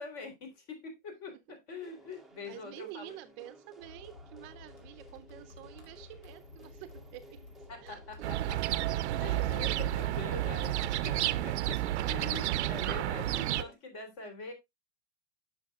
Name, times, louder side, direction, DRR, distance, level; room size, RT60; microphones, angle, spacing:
voice 1, 0.0-3.2 7.7-8.6 9.2-14.5, left 4 dB, 45° left, 3.5 m, -44 dB
voice 2, 1.3-1.6 2.4-7.4 7.8-8.7 9.1-10.0, right 16 dB, 35° right, 0.6 m, -49 dB
sound 1, 1.8-13.8, right 1 dB, ahead, 0.7 m, -56 dB
sound 2, 3.8-12.0, left 3 dB, 85° left, 3.1 m, -53 dB
sound 3, 8.2-13.6, right 13 dB, 80° right, 0.6 m, -31 dB
9.8 x 6.4 x 2.3 m
hypercardioid pair, 135°, 34 cm